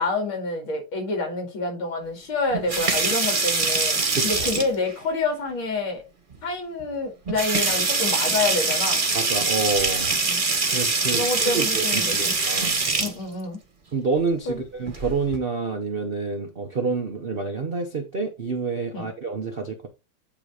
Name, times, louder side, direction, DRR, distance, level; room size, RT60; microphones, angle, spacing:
voice 1, 0.0-6.0 6.4-9.0 10.2-10.4 11.1-12.3 13.0-13.6 14.5-14.7 18.9-19.1, left 3 dB, 70° left, 2.8 m, -27 dB
sound 1, 2.5-4.9 6.3-6.4 6.8-6.9 7.3-13.1 14.8-15.4, right 3 dB, 30° right, 1.0 m, -23 dB
voice 2, 4.1-4.6 9.1-10.1 10.7-12.8 13.9-19.9, right 4 dB, 80° right, 0.5 m, -28 dB
8.9 x 3.0 x 4.8 m
omnidirectional pair, 2.3 m